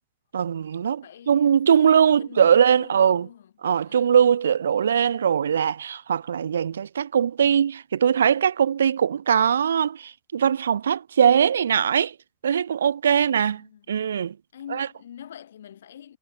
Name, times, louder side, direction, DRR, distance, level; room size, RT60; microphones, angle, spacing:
voice 1, 0.3-3.3 3.6-12.1 12.4-14.4 14.7-14.9, right 8 dB, 65° right, 0.5 m, -21 dB
voice 2, 1.0-3.5 3.8-4.2 13.1-13.9 14.5-16.2, left 10 dB, 65° left, 5.7 m, -45 dB
figure-of-eight pair, 90°, 0 cm